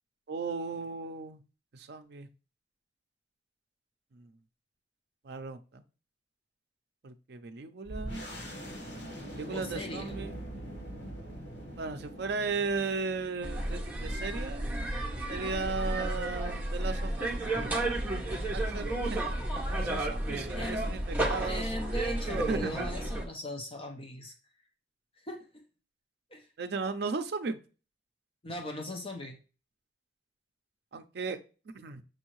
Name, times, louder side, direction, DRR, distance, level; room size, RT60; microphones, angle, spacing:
voice 1, 0.3-1.4 1.7-2.3 4.1-4.3 5.2-5.8 7.0-8.2 9.3-10.3 11.8-14.6 15.3-18.1 18.5-19.2 19.8-21.7 22.3-22.9 26.6-27.6 30.9-31.4 31.7-32.0, right 4 dB, 65° right, 8 dB, 0.5 m, -36 dB
sound 1, 7.9-17.1, equal, 75° left, 1.8 m, -44 dB
voice 2, 9.5-10.1 20.5-20.8 21.4-24.3 25.2-25.4 26.3-26.5 28.4-29.4, left 1 dB, 30° left, 3 dB, 0.6 m, -39 dB
sound 2, 13.4-23.2, right 1 dB, 10° right, 0.9 m, -32 dB
6.2 x 2.7 x 3.0 m, 0.35 s
head